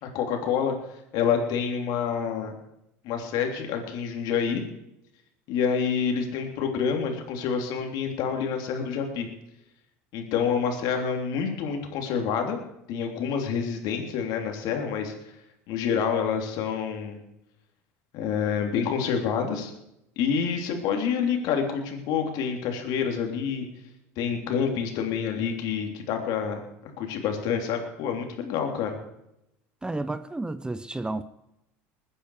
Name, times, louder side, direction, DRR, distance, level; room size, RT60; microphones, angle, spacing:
voice 1, 0.0-2.5 3.0-4.6 5.5-9.3 10.1-12.6 12.9-15.1 15.7-17.2 18.1-19.7 20.2-23.6 24.2-26.6 27.0-29.0, left 7 dB, 65° left, 3.2 m, -27 dB
voice 2, 29.8-31.2, right 2 dB, 10° right, 0.7 m, -31 dB
21.0 x 9.8 x 4.9 m
supercardioid pair, 90°, 7 cm